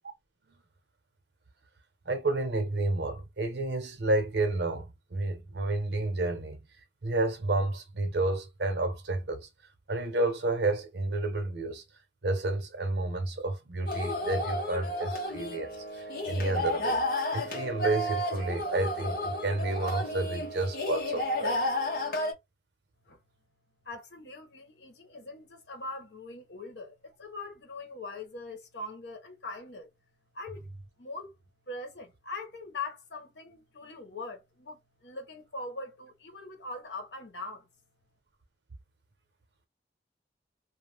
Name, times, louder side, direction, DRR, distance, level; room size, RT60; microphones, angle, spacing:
voice 1, 2.1-6.6 7.0-9.5 9.9-11.8 12.2-15.7 16.0-17.0 17.3-21.6, right 2 dB, 75° right, 0.9 m, -30 dB
sound 1, 13.9-22.3, left 1 dB, 55° left, 0.9 m, -32 dB
voice 2, 23.8-29.9 30.3-30.6 31.0-31.3 31.7-37.7, left 3 dB, 80° left, 1.0 m, -42 dB
2.5 x 2.2 x 3.3 m
head